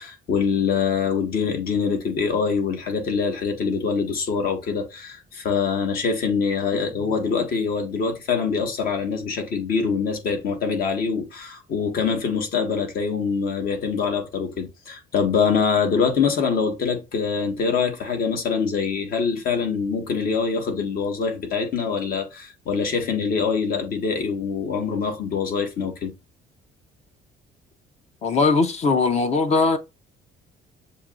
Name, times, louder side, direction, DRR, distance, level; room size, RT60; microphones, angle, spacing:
voice 1, 0.0-26.1, left 5 dB, 60° left, 1.4 m, -24 dB
voice 2, 28.2-29.8, left 4 dB, 40° left, 0.7 m, -20 dB
6.8 x 3.0 x 2.4 m
cardioid pair, 110°, 17 cm